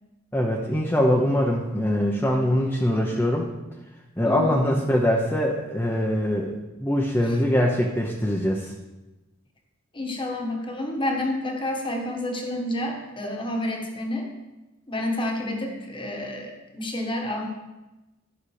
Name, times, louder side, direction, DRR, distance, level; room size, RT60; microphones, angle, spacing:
voice 1, 0.3-3.5 4.2-6.5 6.8-8.7, equal, 10° left, -2 dB, 0.9 m, -23 dB
voice 2, 4.2-4.6 9.9-14.3 14.9-17.5, left 1 dB, 25° left, 2 dB, 1.4 m, -29 dB
13.0 x 5.7 x 4.9 m, 1.1 s
head